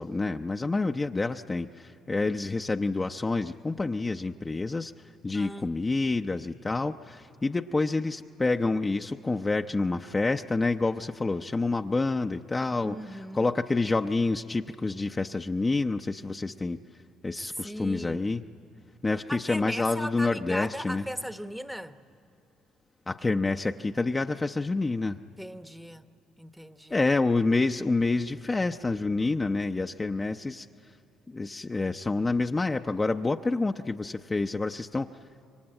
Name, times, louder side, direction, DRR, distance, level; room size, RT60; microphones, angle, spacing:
voice 1, 0.0-4.9 5.2-16.8 17.2-18.4 19.0-21.0 23.1-25.2 26.9-30.7 31.3-35.1, left 3 dB, 25° left, 0.7 m, -28 dB
voice 2, 5.3-5.7 12.8-13.5 17.5-18.3 19.3-22.0 25.4-26.0 26.4-27.1, equal, ahead, 1.0 m, -38 dB
27.0 x 23.5 x 8.9 m
supercardioid pair, 70°, 0 cm